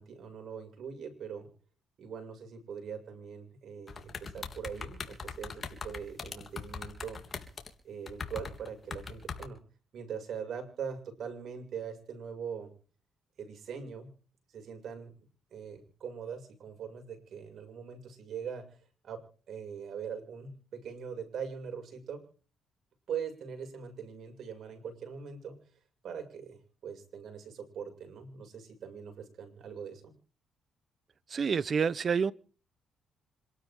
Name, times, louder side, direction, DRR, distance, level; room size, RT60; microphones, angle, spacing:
voice 1, 0.0-1.5 2.0-7.2 7.8-9.6 9.9-12.7 13.4-14.1 14.5-15.1 15.5-18.6 19.0-19.2 19.5-22.2 23.1-25.6 26.0-30.1, right 7 dB, 65° right, 7.0 m, -42 dB
sound 1, 3.9-7.7 8.1-9.5, left 5 dB, 40° left, 3.3 m, -40 dB
voice 2, 31.3-32.3, right 6 dB, 45° right, 1.0 m, -28 dB
27.0 x 12.5 x 3.8 m
cardioid pair, 90°, 0 cm